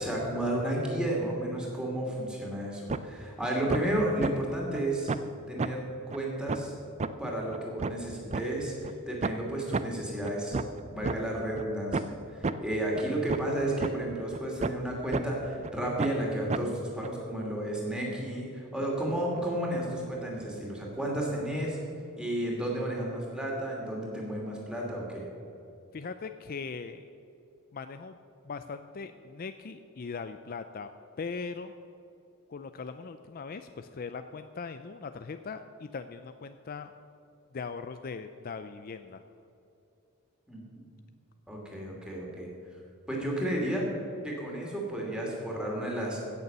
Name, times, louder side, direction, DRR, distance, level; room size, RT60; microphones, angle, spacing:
voice 1, 0.0-5.1 5.5-6.7 7.2-10.6 10.9-21.8 22.2-25.2 40.5-40.7 41.5-42.5 43.1-43.9 44.2-46.2, right 1 dB, 5° right, -2 dB, 2.7 m, -32 dB
sound 1, 2.9-3.0 3.4-3.8 4.2-4.3 4.7-4.8 5.1-5.3 5.6-5.7 6.1-6.2 6.5-6.6 7.0-7.1 7.5-8.4 8.8-8.9 9.2-9.4 9.7-9.8 10.2-11.2 11.6-11.7 11.9-12.1 12.4-12.5 12.9-13.0 13.3-13.5 13.8-13.9 14.3-14.9 15.1-15.2 15.6-15.7 16.0-16.2 16.5-16.6 17.0-17.1, right 4 dB, 30° right, 0.4 m, -30 dB
voice 2, 25.9-27.0 27.7-28.2 28.4-30.9 31.2-31.7 32.5-36.9 37.5-39.2, left 5 dB, 40° left, 9 dB, 0.4 m, -40 dB
16.5 x 6.9 x 6.8 m, 2.8 s
head